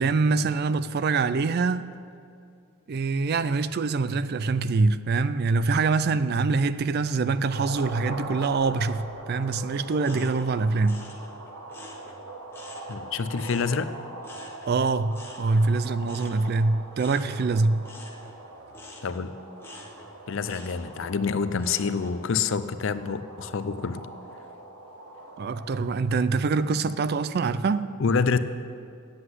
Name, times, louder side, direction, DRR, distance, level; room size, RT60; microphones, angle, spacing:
voice 1, 0.0-2.0 2.9-11.1 14.7-17.8 25.4-27.9, right 4 dB, 45° right, 0.3 m, -24 dB
sound 1, 7.5-26.0, right 2 dB, 80° right, 1.2 m, -42 dB
sound 2, 10.0-13.0 13.3-22.2 22.6-23.1, left 2 dB, 10° left, 1.2 m, -48 dB
voice 2, 12.9-13.9 19.0-19.4 20.3-24.1 28.0-28.4, left 5 dB, 60° left, 0.4 m, -27 dB
9.6 x 7.9 x 7.9 m
head